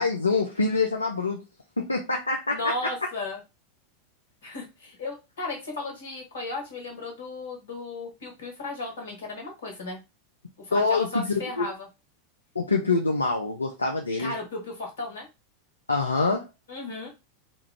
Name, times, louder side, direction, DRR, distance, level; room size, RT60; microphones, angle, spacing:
voice 1, 0.0-1.4 1.8-2.6 10.7-11.7 12.6-14.3 15.9-16.5, left 3 dB, 85° left, 2 dB, 0.4 m, -25 dB
voice 2, 2.5-3.4 4.4-10.0 10.6-11.9 14.2-15.3 16.7-17.1, left 2 dB, 70° left, 1 dB, 1.3 m, -35 dB
3.0 x 2.4 x 3.3 m, 0.25 s
figure-of-eight pair, 90°, 0 cm